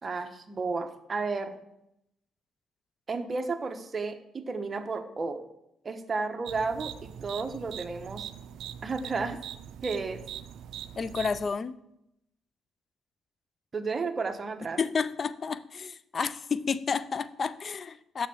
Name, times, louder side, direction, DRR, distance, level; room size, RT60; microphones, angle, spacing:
voice 1, 0.0-1.6 3.1-5.4 5.8-8.3 8.8-9.4 9.8-10.2 13.7-14.8, right 4 dB, 35° right, 7 dB, 1.0 m, -32 dB
sound 1, 6.5-11.5, right 9 dB, 80° right, 0.4 m, -42 dB
voice 2, 11.0-11.8 14.8-18.3, left 5 dB, 45° left, 15 dB, 0.5 m, -31 dB
7.1 x 6.5 x 7.0 m, 0.81 s
cardioid pair, 90°, 0 cm